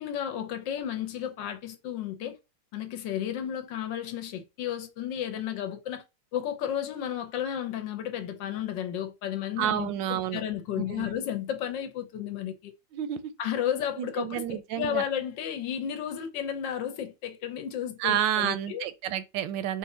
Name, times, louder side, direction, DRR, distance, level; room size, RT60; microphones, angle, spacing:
voice 1, 0.0-2.4 2.7-6.0 6.3-12.7 13.4-18.8, left 10 dB, 80° left, 1.4 m, -33 dB
voice 2, 9.6-10.4 10.8-11.1 12.9-13.3 14.0-15.0 18.0-19.8, right 10 dB, 80° right, 1.3 m, -30 dB
4.1 x 2.6 x 4.1 m
omnidirectional pair, 2.0 m